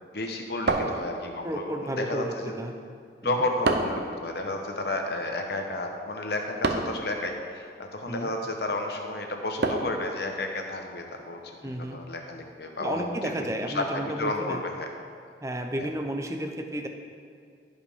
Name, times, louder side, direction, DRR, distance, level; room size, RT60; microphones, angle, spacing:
voice 1, 0.1-2.5 3.2-14.9 15.8-15.9, left 2 dB, 60° left, 3 dB, 1.0 m, -32 dB
sound 1, 0.7-1.6 3.6-4.1 6.6-7.0 9.6-10.1, right 3 dB, 65° right, 0.7 m, -27 dB
voice 2, 1.4-2.7 3.2-3.4 8.1-8.3 11.6-12.0 12.8-14.6 15.4-16.9, right 1 dB, 15° right, 5 dB, 0.6 m, -32 dB
15.0 x 5.4 x 3.6 m, 2.3 s
head